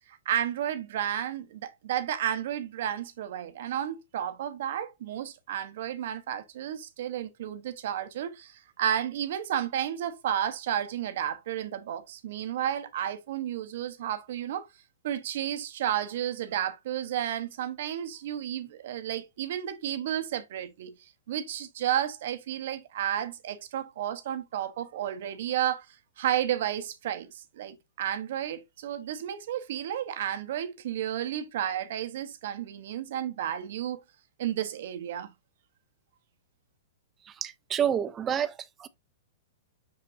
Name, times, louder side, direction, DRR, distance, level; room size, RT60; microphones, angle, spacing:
voice 1, 0.1-14.7 15.0-20.9 21.3-25.9 26.2-34.0 34.4-35.3, right 10 dB, 55° right, 0.9 m, -32 dB
voice 2, 37.2-38.9, right 9 dB, 15° right, 0.5 m, -29 dB
6.6 x 5.7 x 2.5 m
hypercardioid pair, 165°, 0 cm